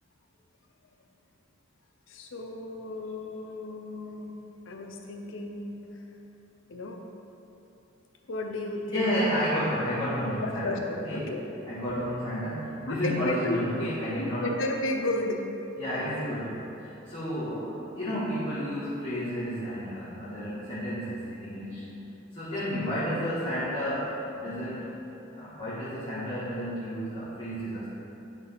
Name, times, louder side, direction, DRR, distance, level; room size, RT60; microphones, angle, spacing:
voice 1, 2.1-4.4 4.7-6.0 6.7-7.0 8.3-9.2 10.4-11.4 11.9-12.0 12.9-13.9 14.2-15.4 22.5-22.7, left 2 dB, 70° left, 3 dB, 0.7 m, -33 dB
voice 2, 8.9-10.7 11.0-11.3 11.6-14.5 15.8-21.9 22.3-24.9 25.3-27.9, equal, 25° left, -13 dB, 1.6 m, -31 dB
10.5 x 4.0 x 3.6 m, 2.9 s
head